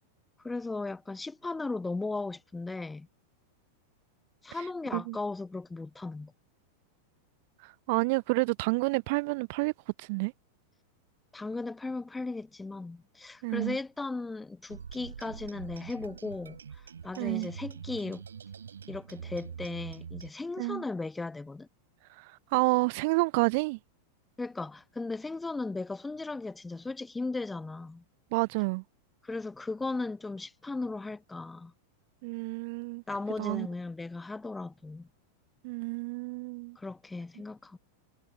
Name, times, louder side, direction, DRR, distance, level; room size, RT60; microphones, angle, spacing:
voice 1, 0.4-3.1 4.4-6.3 11.3-18.2 18.9-21.7 24.4-28.0 29.2-31.7 33.1-35.1 36.8-37.8, left 3 dB, 10° left, 1.2 m, -36 dB
voice 2, 7.6-9.7 10.0-10.3 13.4-13.8 17.2-17.5 20.6-20.8 22.2-23.8 28.3-28.8 32.2-33.0 33.4-33.7 35.6-36.8, right 27 dB, 50° right, 0.4 m, -29 dB
sound 1, 14.7-20.3, right 7 dB, 75° right, 4.6 m, -44 dB
figure-of-eight pair, 90°, 0 cm